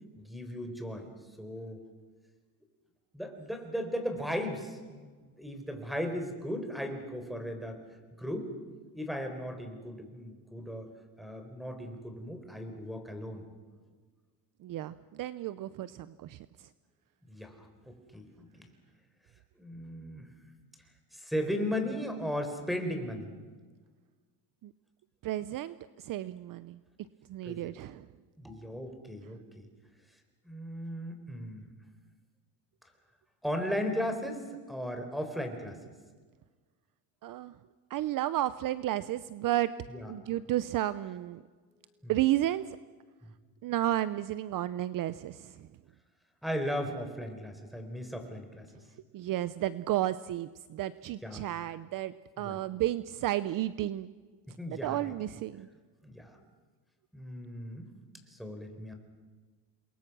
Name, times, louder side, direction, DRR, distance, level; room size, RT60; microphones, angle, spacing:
voice 1, 0.2-1.8 3.1-7.8 8.2-8.5 8.9-10.9 11.2-13.4 17.3-18.7 19.6-20.3 21.1-23.3 27.4-27.7 28.4-29.7 30.4-31.7 33.4-35.8 39.9-40.1 42.0-42.1 43.2-43.3 46.4-48.7 51.2-51.5 52.4-52.6 54.6-55.1 56.0-56.4 57.1-57.9 58.3-58.9, equal, ahead, 6 dB, 4.3 m, -37 dB
voice 2, 14.6-16.4 24.6-24.7 25.2-26.8 27.3-28.1 37.2-37.5 37.9-39.7 40.1-41.4 42.1-42.8 43.6-45.7 49.1-54.1 54.7-55.7, right 14 dB, 50° right, 15 dB, 0.7 m, -32 dB
28.5 x 22.0 x 6.2 m, 1.4 s
cardioid pair, 120°, 43 cm